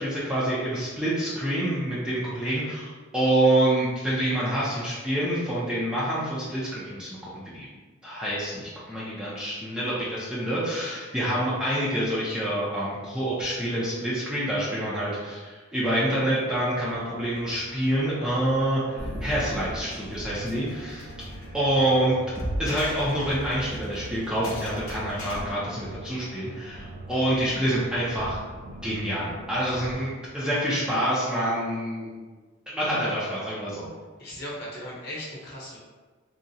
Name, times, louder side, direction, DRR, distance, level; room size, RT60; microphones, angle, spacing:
voice 1, 0.0-7.7 8.0-21.1 21.5-22.2 22.6-28.4 28.8-32.2 32.7-33.9, right 1 dB, 5° right, -9 dB, 0.4 m, -27 dB
sound 1, 16.9-30.0, right 1 dB, 65° right, 0.5 m, -43 dB
sound 2, 19.0-25.4, equal, 85° left, 0.7 m, -36 dB
voice 2, 34.2-35.8, equal, 50° left, -6 dB, 0.8 m, -37 dB
3.6 x 2.0 x 2.7 m, 1.4 s
head